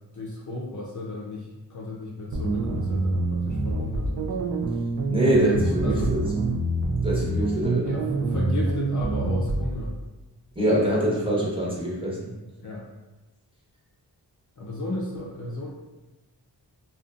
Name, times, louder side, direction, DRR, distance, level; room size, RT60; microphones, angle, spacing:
voice 1, 0.1-4.3 5.5-6.1 7.8-9.9 12.6-12.8 14.6-15.7, left 1 dB, 45° left, -4 dB, 0.5 m, -33 dB
sound 1, 2.3-9.7, right 2 dB, 40° right, 0.4 m, -26 dB
voice 2, 5.1-6.2 7.0-7.9 10.6-12.2, right 1 dB, 10° right, -7 dB, 1.0 m, -24 dB
2.5 x 2.4 x 2.4 m, 1.1 s
cardioid pair, 45°, 43 cm